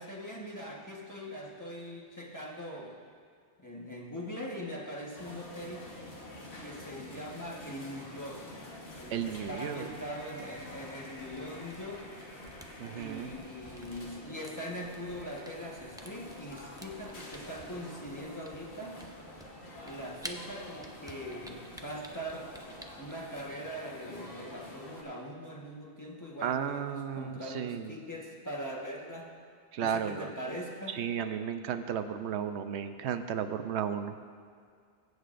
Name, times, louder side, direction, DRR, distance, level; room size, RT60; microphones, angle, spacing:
voice 1, 0.0-3.0 3.6-5.9 6.6-8.5 9.0-12.1 12.9-19.0 19.8-22.5 23.0-29.3 29.8-31.0, equal, 15° left, -2 dB, 1.2 m, -42 dB
sound 1, 5.2-25.0, left 1 dB, 70° left, 1.6 m, -48 dB
sound 2, 8.9-13.4, left 1 dB, 45° left, 1.9 m, -54 dB
voice 2, 9.1-9.9 12.8-13.3 26.4-27.9 29.7-30.3 30.9-34.1, right 8 dB, 85° right, 8 dB, 0.9 m, -34 dB
Camera, 11.0-23.5, right 1 dB, 5° right, 0.4 m, -51 dB
22.0 x 8.1 x 2.5 m, 2.2 s
omnidirectional pair, 1.1 m